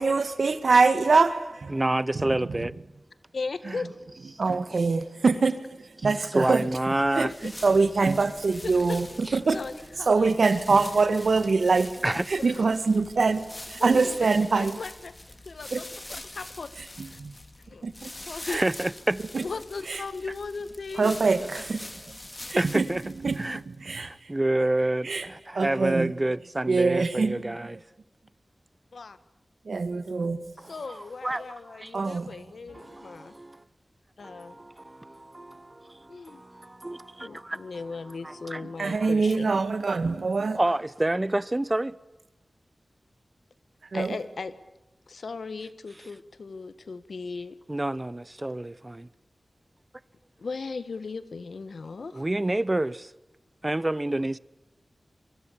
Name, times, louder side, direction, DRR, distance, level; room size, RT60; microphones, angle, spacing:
voice 1, 0.0-1.8 2.2-2.4 3.7-3.8 4.4-5.6 6.0-6.7 7.2-9.6 10.1-11.9 12.3-14.8 15.7-15.8 17.0-17.3 17.8-18.1 18.5-18.6 19.3-19.4 19.9-20.0 21.0-21.9 22.5-24.3 25.0-25.3 25.5-26.1 26.7-27.7 29.7-30.5 31.9-32.3 38.8-40.6 43.9-44.2, right 4 dB, 80° right, 1.9 m, -24 dB
voice 2, 1.7-2.7 3.7-3.8 6.3-7.3 9.3-9.4 12.0-12.3 18.4-19.2 22.6-23.6 23.9-27.8 30.6-31.9 32.7-33.7 34.2-39.1 40.6-42.0 47.7-49.1 52.1-53.1 53.6-54.4, right 1 dB, 25° right, 0.9 m, -29 dB
voice 3, 3.3-3.9 4.5-4.6 7.2-7.3 8.6-9.0 9.5-9.7 10.0-10.4 13.8-14.2 14.5-15.1 15.4-15.9 16.1-16.7 17.0-17.2 17.7-17.8 18.1-18.6 19.4-21.1 28.9-29.2 30.7-33.3 34.2-34.6 36.1-36.4 37.2-39.5 43.9-44.5 45.1-47.6 50.4-52.3, left 4 dB, 85° left, 1.5 m, -37 dB
sound 1, 7.2-23.8, left 1 dB, 30° left, 2.3 m, -44 dB
24.0 x 23.0 x 8.7 m
wide cardioid pair, 60°, 0 cm